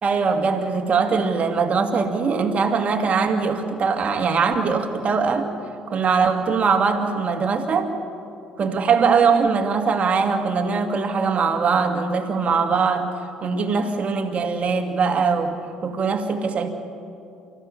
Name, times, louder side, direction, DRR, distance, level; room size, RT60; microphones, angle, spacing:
voice 1, 0.0-5.5 5.9-7.9 8.6-16.7, right 5 dB, 40° right, 4 dB, 2.3 m, -21 dB
30.0 x 15.0 x 7.0 m, 2.6 s
figure-of-eight pair, 55°, 3 cm